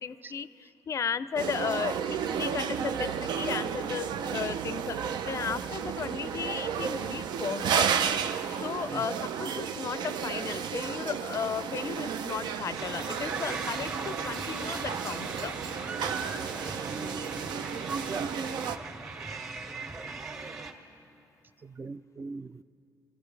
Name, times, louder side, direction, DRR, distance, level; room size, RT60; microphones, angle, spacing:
voice 1, 0.0-7.9 8.6-15.6, left 7 dB, 45° left, 15 dB, 0.4 m, -35 dB
sound 1, 1.4-18.8, right 7 dB, 75° right, 0.6 m, -32 dB
sound 2, 12.8-20.7, right 3 dB, 45° right, 1.9 m, -38 dB
voice 2, 16.7-17.5 18.1-18.3 21.6-22.6, right 4 dB, 25° right, 14 dB, 0.4 m, -40 dB
25.5 x 14.5 x 3.3 m, 2.9 s
cardioid pair, 95°, 8 cm